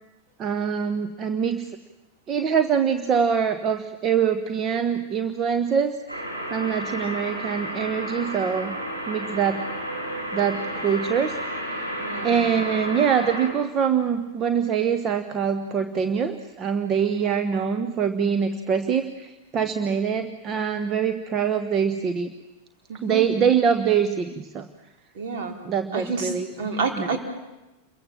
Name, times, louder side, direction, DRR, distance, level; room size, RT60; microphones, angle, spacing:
voice 1, 0.4-1.8 2.3-6.2 6.5-8.8 9.1-9.7 10.3-11.4 12.2-22.3 23.0-24.7 25.6-26.5 27.0-27.1, right 7 dB, 30° right, 9 dB, 1.2 m, -24 dB
sound 1, 6.1-13.5, equal, 90° right, 6.3 m, -32 dB
voice 2, 12.0-12.5 22.9-23.3 25.1-25.5 25.9-27.2, right 4 dB, 50° right, 4 dB, 4.4 m, -29 dB
28.5 x 23.0 x 7.4 m, 1.0 s
figure-of-eight pair, 90°, 0 cm